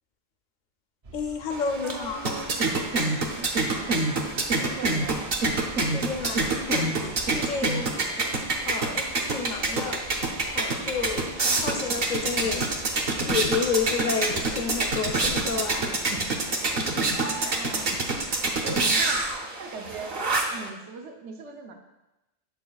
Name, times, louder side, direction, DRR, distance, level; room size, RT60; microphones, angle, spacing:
sound 1, 1.0-19.4, right 2 dB, 45° right, 0.5 m, -45 dB
voice 1, 1.1-2.2 5.9-7.9 8.6-10.0 10.5-11.3 11.6-12.7 13.3-15.9, left 5 dB, 50° left, 4 dB, 0.6 m, -30 dB
sound 2, 1.5-20.7, right 2 dB, 60° right, 0.9 m, -27 dB
voice 2, 1.8-2.6 3.4-5.4 7.7-8.2 11.4-12.1 17.2-17.9 18.6-19.2 19.6-20.2 20.5-21.7, right 4 dB, 85° right, 4 dB, 1.1 m, -41 dB
7.4 x 6.1 x 2.3 m, 0.99 s
omnidirectional pair, 1.2 m